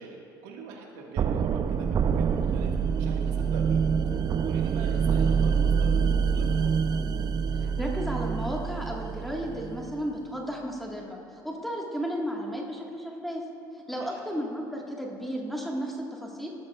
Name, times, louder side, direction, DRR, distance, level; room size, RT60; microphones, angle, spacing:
voice 1, 0.0-6.7 13.9-14.2, right 4 dB, 75° right, 0 dB, 1.6 m, -44 dB
sound 1, 1.2-10.0, right 6 dB, 40° right, 0.5 m, -26 dB
voice 2, 7.5-13.4 13.7-16.5, equal, ahead, -2 dB, 1.6 m, -34 dB
19.0 x 13.0 x 2.4 m, 2.7 s
hypercardioid pair, 70°, 11 cm